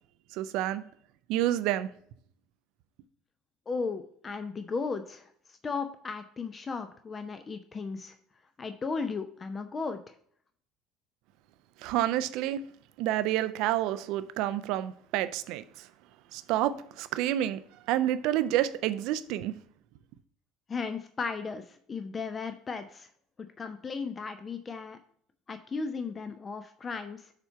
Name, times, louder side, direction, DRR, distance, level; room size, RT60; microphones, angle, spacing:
voice 1, 0.3-0.8 1.3-1.9 11.8-12.6 13.0-15.6 16.3-17.6 17.9-19.6, right 13 dB, 55° right, 0.4 m, -29 dB
voice 2, 3.7-8.1 8.6-10.1 20.7-23.1 23.6-25.0 25.5-27.3, left 4 dB, 25° left, 0.5 m, -35 dB
6.8 x 4.4 x 5.4 m
figure-of-eight pair, 65°, 0 cm